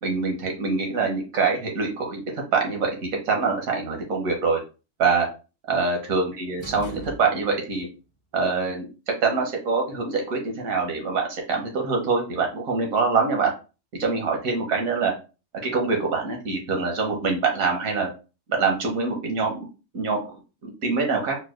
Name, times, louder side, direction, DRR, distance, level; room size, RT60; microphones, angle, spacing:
voice 1, 0.0-4.6 5.0-5.3 5.7-7.9 8.3-13.5 14.0-15.1 15.6-18.1 18.5-19.7 19.9-20.2 20.6-21.4, right 4 dB, 75° right, 1 dB, 1.4 m, -24 dB
sound 1, 6.6-7.8, equal, 35° left, 0.5 m, -40 dB
4.6 x 2.2 x 2.4 m, 0.32 s
omnidirectional pair, 1.5 m